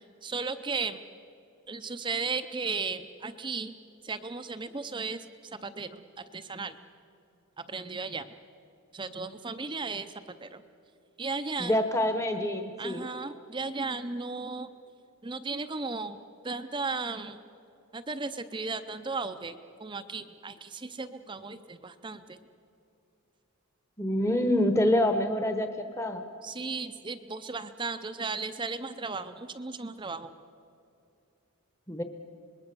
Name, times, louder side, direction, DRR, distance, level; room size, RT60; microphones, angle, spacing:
voice 1, 0.2-1.0 1.7-3.7 4.0-5.2 5.6-6.0 6.3-6.7 7.7-8.2 8.9-10.1 10.4-10.6 11.2-11.8 12.8-14.7 15.2-16.2 16.4-17.4 17.9-22.4 26.4-30.3, right 4 dB, 20° right, 9 dB, 0.6 m, -35 dB
voice 2, 11.6-13.0 24.0-25.7 26.0-26.2 31.9-32.0, left 1 dB, 10° left, 7 dB, 1.0 m, -26 dB
26.5 x 21.0 x 6.9 m, 2.7 s
head